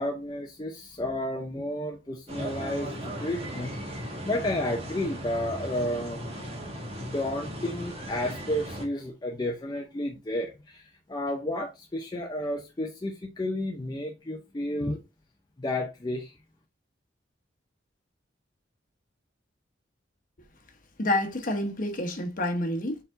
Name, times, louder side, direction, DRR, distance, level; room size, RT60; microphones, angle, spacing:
voice 1, 0.0-3.8 4.2-6.3 7.0-15.0 15.6-16.3, left 1 dB, 25° left, 0.6 m, -32 dB
sound 1, 2.3-8.9, right 1 dB, 35° right, 1.4 m, -37 dB
voice 2, 21.0-23.0, left 1 dB, 50° left, 1.0 m, -28 dB
4.6 x 4.1 x 2.6 m
head